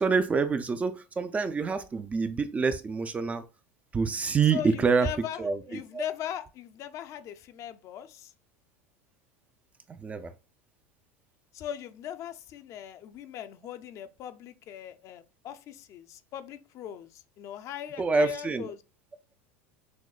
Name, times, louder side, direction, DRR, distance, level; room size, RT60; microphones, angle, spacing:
voice 1, 0.0-3.4 3.9-5.1 5.4-6.0 9.9-10.3 18.0-18.7, right 4 dB, 20° right, 0.4 m, -27 dB
voice 2, 4.5-8.3 11.5-18.8, left 10 dB, 45° left, 0.5 m, -39 dB
6.1 x 2.1 x 2.3 m
supercardioid pair, 110°, 7 cm